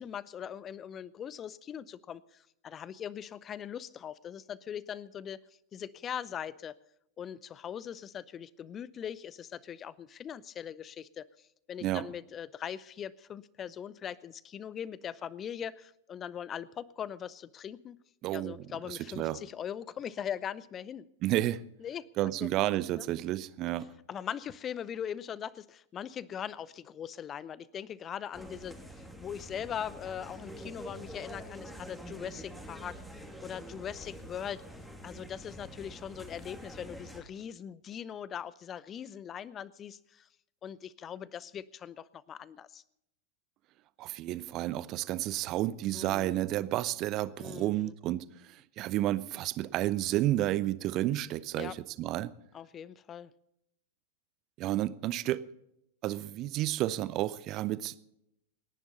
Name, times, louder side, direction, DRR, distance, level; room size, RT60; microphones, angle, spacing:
voice 1, 0.0-5.4 5.7-6.8 7.2-11.3 11.7-18.0 18.3-21.1 21.8-22.1 22.4-22.5 22.9-23.1 24.1-34.6 35.0-40.3 40.6-42.8 45.9-46.4 47.4-47.9 51.6-51.8 52.5-53.3, left 9 dB, 25° left, 0.7 m, -41 dB
voice 2, 18.2-19.4 21.2-21.6 22.2-23.9 44.0-52.3 54.6-55.4 56.0-57.9, right 15 dB, 35° right, 0.8 m, -31 dB
sound 1, 28.3-37.2, equal, 5° left, 2.7 m, -46 dB
28.5 x 11.0 x 4.1 m
figure-of-eight pair, 90°, 0 cm